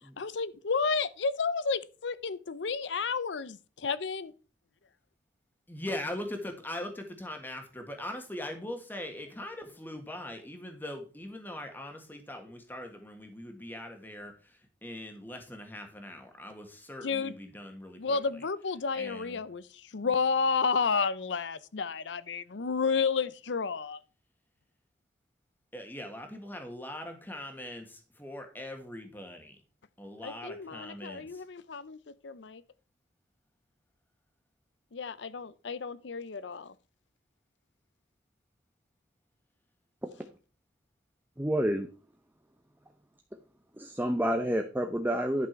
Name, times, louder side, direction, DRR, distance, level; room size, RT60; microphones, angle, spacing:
voice 1, 0.2-4.3 17.0-17.3 18.0-19.6 19.9-24.0 30.2-32.6 34.9-36.7, left 5 dB, 75° left, 0.6 m, -31 dB
voice 2, 5.7-18.4 18.9-19.4 20.0-20.1 25.7-29.6 30.0-31.4, left 1 dB, 10° left, 1.7 m, -41 dB
voice 3, 41.4-41.9 43.8-45.5, equal, 10° right, 0.7 m, -28 dB
11.0 x 6.1 x 4.6 m
head